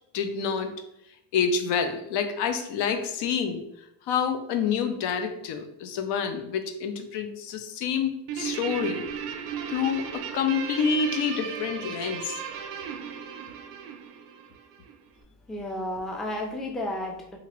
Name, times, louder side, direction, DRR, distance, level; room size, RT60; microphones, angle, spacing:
voice 1, 0.1-0.7 1.3-3.6 4.1-9.0 9.7-12.4, left 6 dB, 80° left, 7 dB, 0.5 m, -28 dB
Guitar, 8.3-15.0, right 7 dB, 85° right, 0.5 m, -36 dB
voice 2, 15.5-17.4, left 1 dB, ahead, 2 dB, 0.3 m, -32 dB
2.8 x 2.4 x 2.9 m, 0.81 s
cardioid pair, 105°, 40 cm